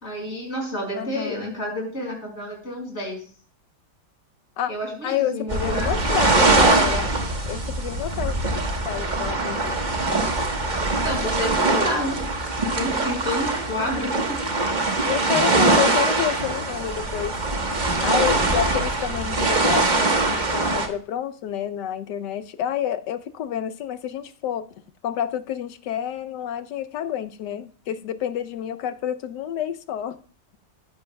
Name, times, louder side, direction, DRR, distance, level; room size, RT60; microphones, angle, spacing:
voice 1, 0.0-3.2 4.7-5.9 11.0-12.2 12.6-14.4, equal, 40° left, 5.4 m, -29 dB
voice 2, 0.9-1.5 4.6-4.7 5.0-7.1 7.5-8.4 8.7-9.8 15.0-17.4 18.0-24.7 25.0-30.2, left 10 dB, 85° left, 1.3 m, -29 dB
sound 1, 5.5-20.9, right 2 dB, 30° right, 1.2 m, -22 dB
14.5 x 11.0 x 2.2 m
omnidirectional pair, 1.8 m